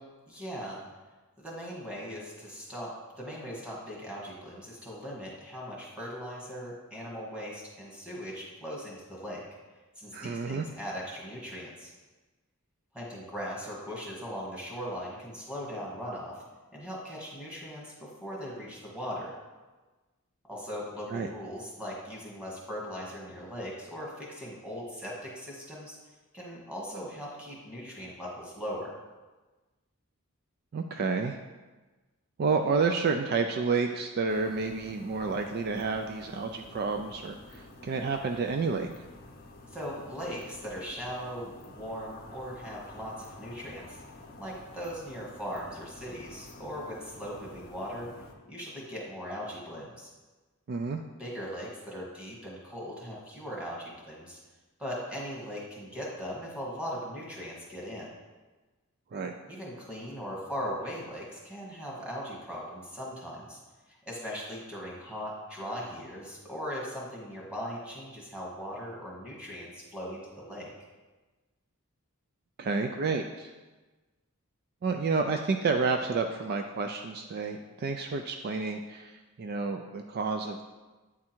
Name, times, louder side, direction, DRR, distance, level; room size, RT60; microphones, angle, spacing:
voice 1, 0.3-0.8 1.4-9.4 9.9-11.9 12.9-16.4 16.7-19.3 20.4-26.0 26.3-29.0 39.7-44.0 44.4-48.1 48.4-50.1 51.2-54.4 54.8-58.1 59.5-63.6 63.9-70.7, equal, 5° right, -5 dB, 1.6 m, -39 dB
voice 2, 10.1-10.7 21.1-21.3 30.7-31.4 32.4-38.9 50.7-51.0 59.1-59.3 72.6-73.5 74.8-80.6, right 4 dB, 45° right, 5 dB, 0.3 m, -30 dB
sound 1, 34.3-48.3, left 2 dB, 40° left, 0.6 m, -50 dB
8.7 x 3.6 x 4.4 m, 1.2 s
head